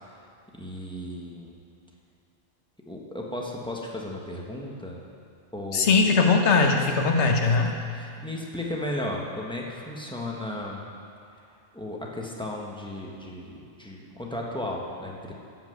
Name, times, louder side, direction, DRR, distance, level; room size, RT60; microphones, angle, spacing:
voice 1, 0.5-1.6 2.9-5.0 5.5-6.0 7.9-10.9 11.7-15.3, left 1 dB, 5° left, -2 dB, 1.2 m, -35 dB
voice 2, 5.7-7.7, left 4 dB, 70° left, 3 dB, 1.2 m, -20 dB
11.5 x 5.8 x 7.8 m, 2.5 s
omnidirectional pair, 1.2 m